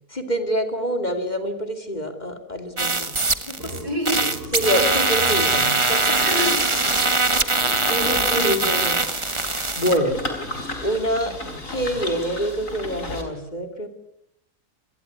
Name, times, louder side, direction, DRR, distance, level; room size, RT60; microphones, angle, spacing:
voice 1, 0.1-3.7 4.5-6.2 8.4-9.1 9.3-10.2 10.8-11.3 11.7-13.9, equal, 25° left, 7 dB, 2.9 m, -26 dB
sound 1, 2.8-3.8 4.1-10.0, right 3 dB, 20° right, 1.5 m, -22 dB
Burping eructation, 3.6-8.4, right 1 dB, 35° right, 5.7 m, -38 dB
voice 2, 3.6-5.3 6.1-6.6 7.8-8.5, equal, 75° right, 5 dB, 7.4 m, -28 dB
sound 2, 6.4-13.2, left 1 dB, 55° left, 4.9 m, -34 dB
28.0 x 21.5 x 9.6 m, 0.80 s
omnidirectional pair, 1.7 m